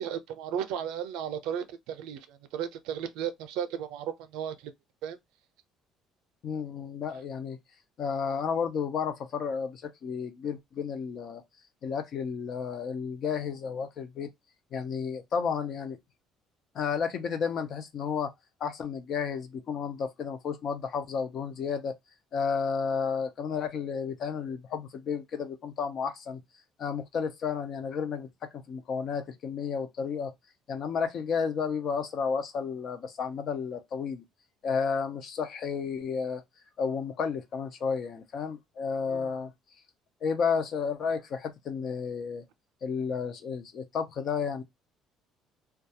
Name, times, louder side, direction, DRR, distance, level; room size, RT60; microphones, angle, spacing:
voice 1, 0.0-4.7 5.0-5.2 39.1-39.3, right 9 dB, 85° right, 0.5 m, -35 dB
voice 2, 6.4-7.6 8.0-11.4 11.8-14.3 14.7-16.0 16.7-18.3 18.6-21.9 22.3-26.4 26.8-30.3 30.7-34.2 34.6-36.4 36.8-39.5 40.2-42.4 42.8-44.6, left 6 dB, 40° left, 0.4 m, -32 dB
2.3 x 2.2 x 2.7 m
cardioid pair, 180°, 0 cm